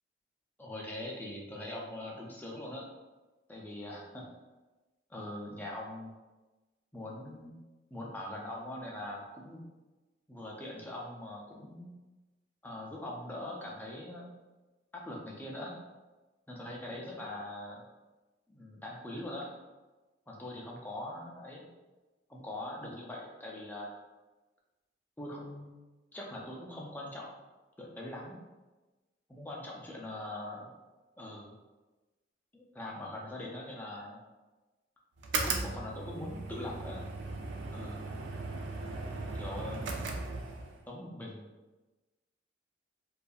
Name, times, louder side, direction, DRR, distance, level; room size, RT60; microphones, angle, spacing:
voice 1, 0.6-2.9 3.5-4.2 5.1-6.1 6.9-7.5 7.9-9.6 10.3-11.9 12.6-14.3 14.9-15.8 16.5-17.8 18.5-19.5 20.3-21.7 22.3-24.0 25.2-25.8 26.1-27.3 27.8-28.4 29.3-30.7 31.2-31.6 32.5-34.2 35.3-37.0 37.7-38.0 39.3-40.1 40.9-41.5, left 1 dB, 10° left, -2 dB, 0.4 m, -42 dB
sound 1, 35.2-40.8, right 3 dB, 80° right, 0.3 m, -37 dB
2.6 x 2.2 x 2.3 m, 1.2 s
head